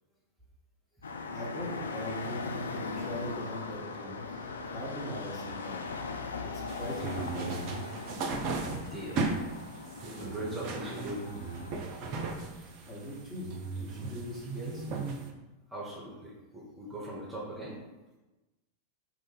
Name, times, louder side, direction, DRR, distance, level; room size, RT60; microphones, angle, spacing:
sound 1, 1.0-11.8, left 4 dB, 70° left, 0.3 m, -39 dB
voice 1, 1.3-5.8 6.4-7.9 12.5-15.1, equal, 20° left, -5 dB, 1.1 m, -41 dB
sound 2, 6.7-15.3, right 3 dB, 40° right, 0.4 m, -36 dB
voice 2, 8.8-9.3 9.9-11.2 15.7-17.8, right 1 dB, 10° right, -5 dB, 0.8 m, -40 dB
2.9 x 2.5 x 4.1 m, 1.1 s
figure-of-eight pair, 90°, 0 cm